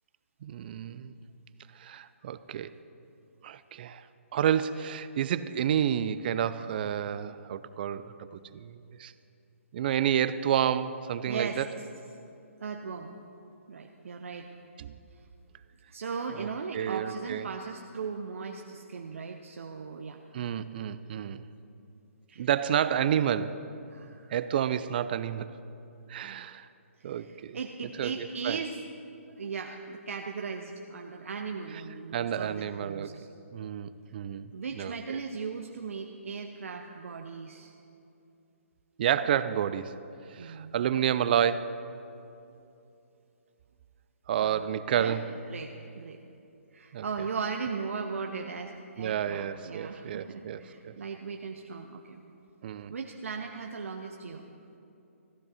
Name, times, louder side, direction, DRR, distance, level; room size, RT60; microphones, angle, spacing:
voice 1, 0.4-1.1 1.8-2.7 3.4-4.0 4.3-9.1 9.7-11.7 14.8-14.9 16.3-16.5 16.7-17.5 20.3-21.4 22.4-23.6 24.3-25.6 26.1-26.7 27.0-27.6 28.0-28.6 31.7-31.8 32.1-33.2 33.5-34.5 34.8-35.2 39.0-39.9 40.3-41.9 44.3-45.3 46.9-47.0 49.0-50.9 52.6-52.9, right 9 dB, 40° right, 14 dB, 0.4 m, -30 dB
voice 2, 11.3-11.6 12.6-13.2 13.7-14.5 15.9-20.2 22.3-22.5 23.9-24.3 27.1-28.8 29.3-33.3 34.5-37.7 40.4-40.7 44.4-44.6 44.9-45.2 45.5-46.2 46.7-52.2 52.9-54.4, right 5 dB, 70° right, 3 dB, 0.7 m, -38 dB
14.5 x 10.5 x 4.2 m, 2.7 s
hypercardioid pair, 145°, 8 cm